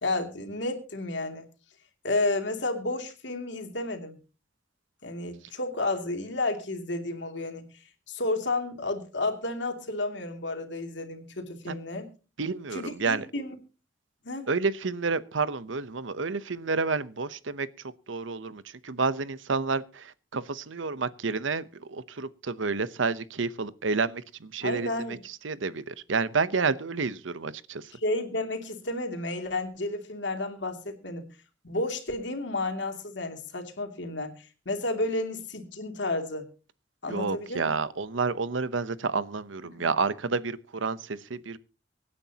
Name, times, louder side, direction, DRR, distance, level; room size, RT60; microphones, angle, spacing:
voice 1, 0.0-1.4 2.0-4.2 5.0-7.7 8.1-12.1 12.7-13.5 14.2-14.5 24.6-25.2 28.0-31.3 31.6-36.5 37.0-37.7 39.8-39.9, left 2 dB, 70° left, 2.7 m, -31 dB
voice 2, 12.4-13.3 14.5-17.7 18.1-27.9 37.1-41.6, right 4 dB, 90° right, 0.9 m, -30 dB
24.5 x 9.7 x 2.9 m
head